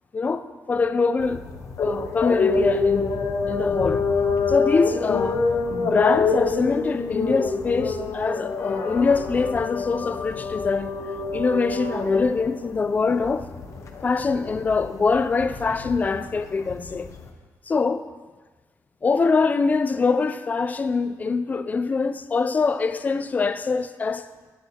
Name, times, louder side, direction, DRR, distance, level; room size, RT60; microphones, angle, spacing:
voice 1, 0.1-1.4 1.8-3.1 3.5-4.0 4.5-5.4 5.7-10.9 11.3-13.5 14.0-17.1 17.7-18.0 19.0-24.3, left 4 dB, 25° left, 0.4 m, -23 dB
sound 1, 1.2-17.3, left 4 dB, 55° left, 0.8 m, -26 dB
10.5 x 9.7 x 2.8 m
wide cardioid pair, 165°, 6 cm